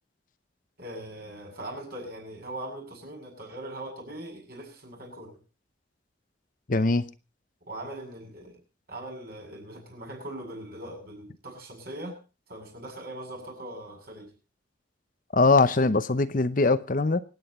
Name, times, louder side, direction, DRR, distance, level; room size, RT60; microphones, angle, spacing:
voice 1, 0.8-5.4 7.7-8.6 8.9-12.2 12.5-14.3, right 1 dB, 55° right, 7.6 m, -40 dB
voice 2, 6.7-7.0 15.3-17.2, left 3 dB, 45° left, 0.8 m, -22 dB
25.5 x 9.5 x 4.3 m
head